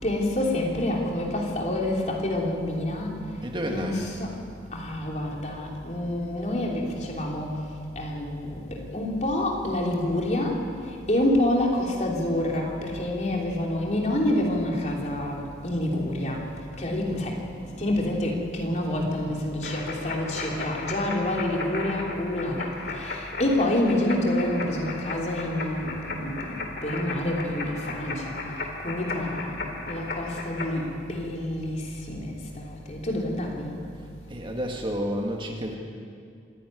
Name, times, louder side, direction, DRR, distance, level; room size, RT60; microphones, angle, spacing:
voice 1, 0.0-3.2 3.6-4.3 4.7-7.6 7.9-16.5 16.8-28.4 28.8-33.7, left 1 dB, 40° left, -1 dB, 3.4 m, -28 dB
voice 2, 3.4-4.1 34.3-35.8, equal, 25° right, 2 dB, 1.8 m, -30 dB
sound 1, 19.6-30.7, left 3 dB, 60° left, 2.5 m, -36 dB
26.0 x 11.0 x 9.5 m, 2.3 s
head